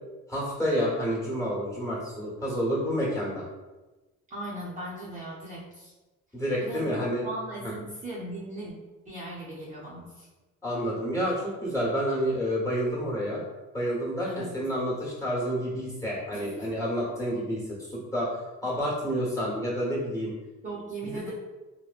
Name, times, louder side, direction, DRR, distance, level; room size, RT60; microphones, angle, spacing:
voice 1, 0.3-3.5 6.3-7.2 7.6-7.7 10.6-13.4 13.7-17.6 17.9-20.3 21.0-21.3, equal, 10° left, -6 dB, 1.2 m, -29 dB
voice 2, 4.3-5.9 6.6-8.7 9.1-10.3 14.3-14.5 16.3-16.6 20.6-21.3, right 1 dB, 25° right, -8 dB, 0.7 m, -38 dB
3.0 x 2.1 x 2.4 m, 1.1 s
cardioid pair, 90°, 30 cm